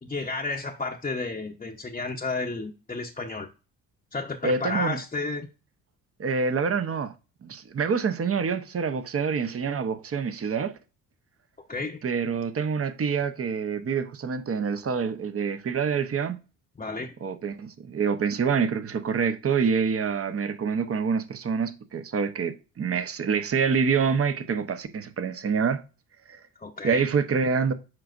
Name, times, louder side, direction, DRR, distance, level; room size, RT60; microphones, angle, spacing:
voice 1, 0.0-3.5 4.1-5.5 11.7-12.0 16.8-17.1 26.6-27.1, left 3 dB, 20° left, 0.9 m, -32 dB
voice 2, 4.4-5.0 6.2-7.1 7.4-10.7 12.0-16.4 17.2-25.8 26.3-26.4 26.8-27.7, right 5 dB, 35° right, 0.9 m, -26 dB
7.7 x 5.0 x 2.6 m
hypercardioid pair, 55°, 41 cm